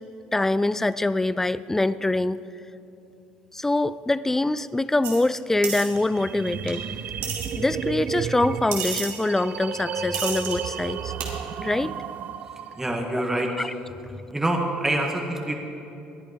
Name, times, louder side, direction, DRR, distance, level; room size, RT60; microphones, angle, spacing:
voice 1, 0.3-2.4 3.5-6.9 7.6-11.1 11.6-12.0 13.6-13.7, left 2 dB, 10° left, 16 dB, 0.4 m, -24 dB
sound 1, 5.0-5.2 5.6-5.9 6.7-6.8 7.2-7.5 8.7-9.1 10.1-10.6 11.2-11.3, right 7 dB, 85° right, 2.5 m, -30 dB
sound 2, 5.9-12.9, right 8 dB, 55° right, 0.6 m, -32 dB
voice 2, 12.7-13.7 14.3-15.5, right 1 dB, 10° right, 1 dB, 1.6 m, -26 dB
19.5 x 11.0 x 5.2 m, 2.8 s
supercardioid pair, 95°, 3 cm